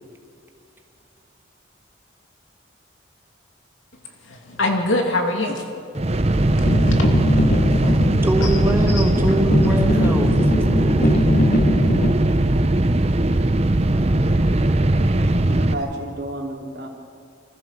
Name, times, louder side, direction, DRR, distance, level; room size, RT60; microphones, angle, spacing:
voice 1, 4.2-5.6 6.9-7.0 7.3-7.5 7.8-8.0 8.4-8.6 8.9-9.0 9.9-10.2 15.1-15.6, left 2 dB, 75° left, 2 dB, 2.7 m, -25 dB
sound 1, 5.9-15.7, right 1 dB, 30° right, 0.7 m, -19 dB
sound 2, 6.6-12.1, left 1 dB, 40° left, 0.9 m, -22 dB
voice 2, 8.2-10.3 10.7-11.2, right 1 dB, 10° right, 3 dB, 1.6 m, -24 dB
voice 3, 15.6-16.9, right 1 dB, 50° right, -1 dB, 3.4 m, -30 dB
25.5 x 15.0 x 7.7 m, 2.4 s
head